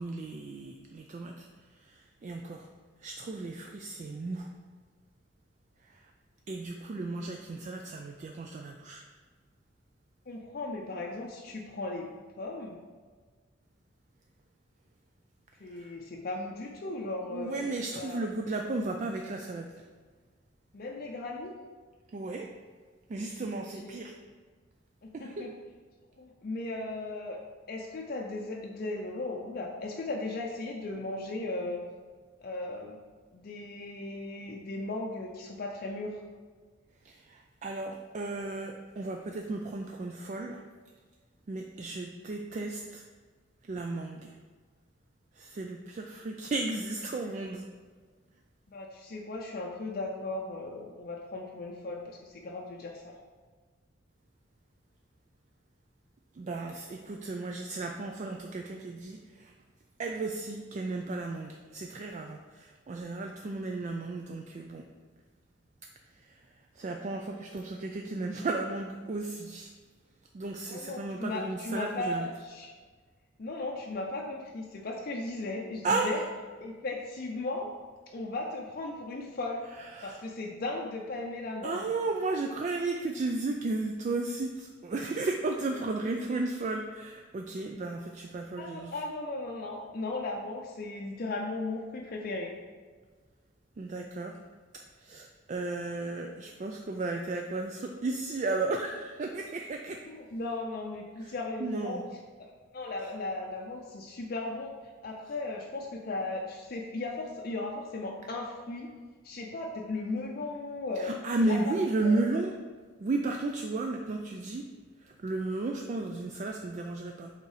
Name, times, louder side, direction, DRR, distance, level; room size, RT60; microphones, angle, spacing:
voice 1, 0.0-2.7 3.0-4.5 5.8-6.1 6.5-9.0 15.6-15.9 17.3-19.8 22.1-22.5 23.1-24.1 25.1-25.5 37.0-40.6 41.5-43.0 43.6-44.4 45.3-47.7 56.3-59.5 60.0-64.9 66.0-69.7 70.3-72.3 75.8-76.2 79.8-80.2 81.6-89.0 93.8-94.4 94.7-100.0 101.2-101.3 101.6-102.0 111.0-112.6 113.0-114.7 115.0-117.3, right 3 dB, 40° right, 3 dB, 0.3 m, -34 dB
voice 2, 10.3-12.1 12.3-12.8 15.6-18.2 20.7-21.5 23.6-24.0 25.0-25.5 26.2-27.4 27.7-31.8 32.4-33.0 33.3-36.2 48.7-53.1 70.7-72.7 73.4-76.2 76.6-77.7 78.1-79.7 80.0-81.8 88.6-92.5 100.1-102.0 102.4-102.5 102.7-104.7 105.0-108.9 109.2-111.1 111.4-111.7 112.0-112.2, left 2 dB, 50° left, -1 dB, 0.5 m, -36 dB
5.4 x 3.8 x 4.8 m, 1.5 s
head